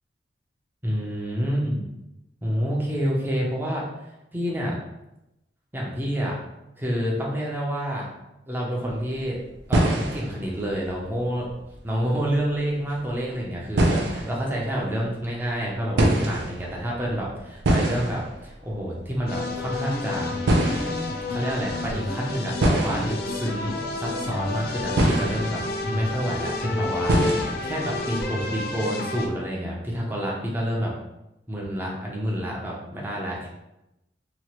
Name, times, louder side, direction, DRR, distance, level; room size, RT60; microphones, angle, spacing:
voice 1, 0.8-1.8 2.4-3.8 4.3-4.8 5.7-6.4 6.8-8.1 8.5-9.4 9.7-11.5 11.8-20.3 21.3-30.9 31.5-33.5, equal, 10° right, -3 dB, 0.5 m, -28 dB
sound 1, 8.9-9.3 9.6-13.1 13.4-14.9 16.0-26.6 27.1-28.0, right 1 dB, 75° right, 0.5 m, -26 dB
sound 2, 19.3-29.3, left 2 dB, 55° left, 0.4 m, -30 dB
2.9 x 2.3 x 2.9 m, 0.91 s
head